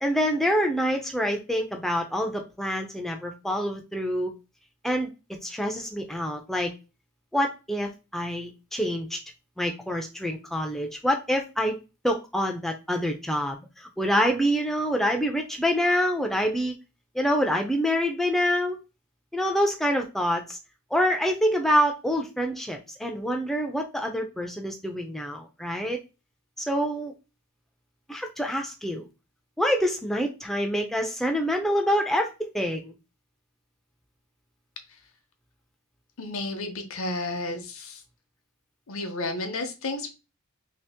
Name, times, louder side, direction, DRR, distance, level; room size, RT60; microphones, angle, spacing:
voice 1, 0.0-4.3 4.8-5.1 5.4-6.7 7.3-9.2 9.6-11.8 12.0-16.8 17.1-18.8 19.3-20.6 20.9-26.0 26.6-27.1 28.1-29.1 29.6-32.9, equal, ahead, 2 dB, 0.3 m, -26 dB
voice 2, 36.2-38.0 38.9-40.1, left 2 dB, 70° left, 6 dB, 0.7 m, -32 dB
2.8 x 2.8 x 3.4 m, 0.29 s
head